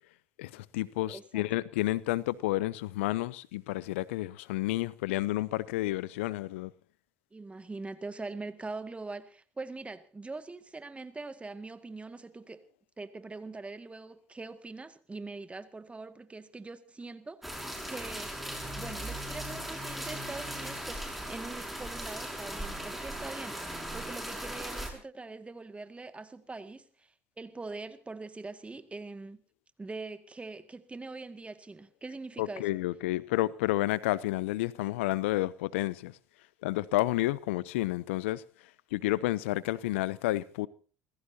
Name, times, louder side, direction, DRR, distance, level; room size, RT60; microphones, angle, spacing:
voice 1, 0.4-6.7 32.4-36.1 36.6-38.4 38.9-40.7, left 17 dB, 80° left, 0.7 m, -30 dB
voice 2, 1.1-1.4 7.3-12.6 13.0-18.4 18.8-29.4 29.8-32.7, right 3 dB, 20° right, 2.0 m, -43 dB
sound 1, 17.4-24.9, right 1 dB, ahead, 5.9 m, -38 dB
29.0 x 16.0 x 2.8 m
hypercardioid pair, 70°, 7 cm